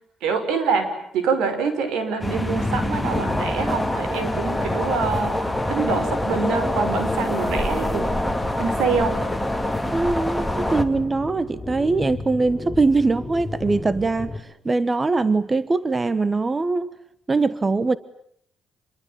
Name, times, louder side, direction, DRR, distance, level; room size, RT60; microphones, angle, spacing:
voice 1, 0.2-0.9 1.1-8.1 8.6-9.2, right 5 dB, 90° right, 5.3 m, -25 dB
sound 1, 2.2-10.8, left 1 dB, 5° left, 2.4 m, -25 dB
sound 2, 2.5-14.4, left 3 dB, 20° left, 5.8 m, -35 dB
voice 2, 9.9-14.3 14.6-16.9 17.3-18.0, right 3 dB, 25° right, 1.1 m, -22 dB
28.0 x 22.5 x 9.0 m
cardioid pair, 90°, 0 cm